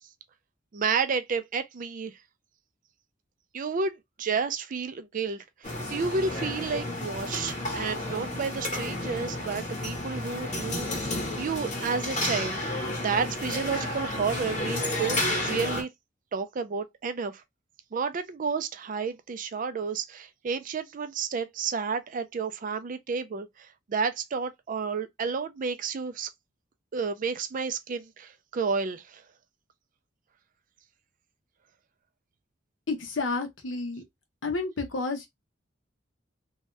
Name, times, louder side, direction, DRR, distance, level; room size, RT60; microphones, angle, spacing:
voice 1, 0.7-2.2 3.5-12.6 13.0-15.9 16.3-17.4 17.9-26.3 26.9-29.2, right 5 dB, 45° right, 0.4 m, -31 dB
sound 1, 5.6-15.8, left 1 dB, 40° left, 1.3 m, -31 dB
voice 2, 32.9-34.0 34.4-35.3, left 3 dB, 80° left, 0.9 m, -30 dB
2.7 x 2.2 x 3.1 m
head